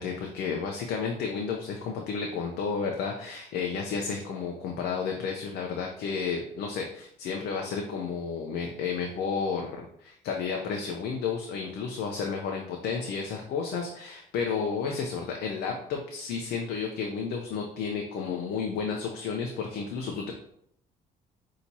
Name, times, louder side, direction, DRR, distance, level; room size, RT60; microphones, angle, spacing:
voice 1, 0.0-20.3, left 5 dB, 75° left, 1 dB, 0.6 m, -32 dB
5.8 x 2.8 x 2.7 m, 0.70 s
cardioid pair, 110°, 17 cm